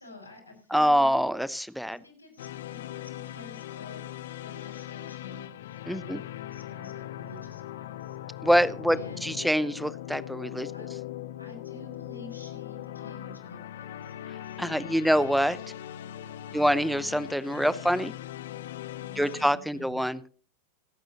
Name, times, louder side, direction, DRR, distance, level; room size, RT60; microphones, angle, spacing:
voice 1, 0.0-1.1 1.9-8.2 8.9-9.4 10.7-10.9 11.4-15.2 16.4-16.8 19.0-20.1, left 2 dB, 85° left, 1 dB, 5.2 m, -49 dB
voice 2, 0.7-2.0 5.9-6.2 8.4-10.7 14.6-15.6 16.5-18.1 19.2-20.2, equal, ahead, 18 dB, 0.7 m, -25 dB
sound 1, 2.4-19.5, left 12 dB, 60° left, 0.7 m, -40 dB
27.0 x 9.1 x 2.9 m, 0.42 s
figure-of-eight pair, 90°, 0 cm